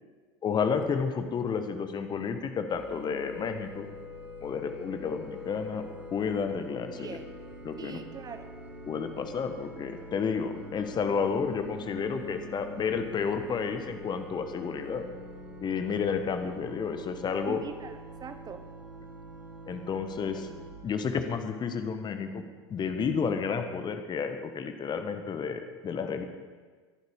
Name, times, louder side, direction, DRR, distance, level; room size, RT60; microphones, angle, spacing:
voice 1, 0.4-3.9 4.4-7.2 7.6-8.0 8.9-15.1 15.6-17.6 19.7-20.5 20.8-22.4 22.7-26.2, left 6 dB, 30° left, 8 dB, 1.4 m, -31 dB
sound 1, 2.7-20.7, left 1 dB, 10° right, 4.1 m, -45 dB
voice 2, 7.8-8.5 17.5-18.6, right 7 dB, 25° right, 9 dB, 0.9 m, -42 dB
20.5 x 11.5 x 4.9 m, 1.5 s
figure-of-eight pair, 70°, 15 cm